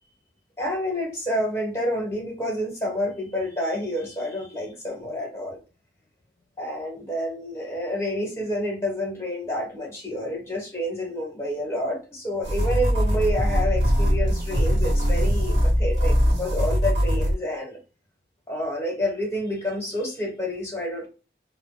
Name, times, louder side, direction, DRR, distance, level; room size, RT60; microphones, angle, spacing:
voice 1, 0.6-5.6 6.6-17.8 18.5-21.1, equal, 15° left, 0.9 m, -29 dB
sound 1, 12.4-17.3, equal, 85° right, 1.1 m, -21 dB
2.1 x 2.1 x 3.0 m
head